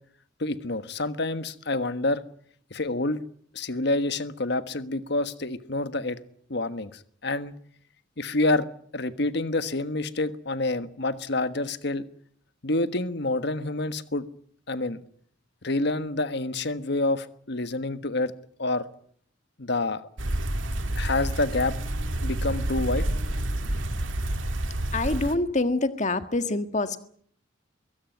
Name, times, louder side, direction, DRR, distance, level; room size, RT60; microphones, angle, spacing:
voice 1, 0.4-2.2 2.7-3.2 3.5-6.2 6.5-7.5 8.2-8.7 8.9-12.1 12.6-14.2 14.7-15.0 15.6-18.3 18.6-18.8 19.6-20.1 21.0-21.8 22.2-23.0, left 2 dB, 60° left, 12 dB, 1.4 m, -27 dB
sound 1, 20.2-25.3, right 1 dB, 80° right, 2.0 m, -29 dB
voice 2, 24.9-27.0, left 2 dB, 40° left, 10 dB, 1.6 m, -26 dB
22.5 x 17.0 x 9.3 m, 0.62 s
head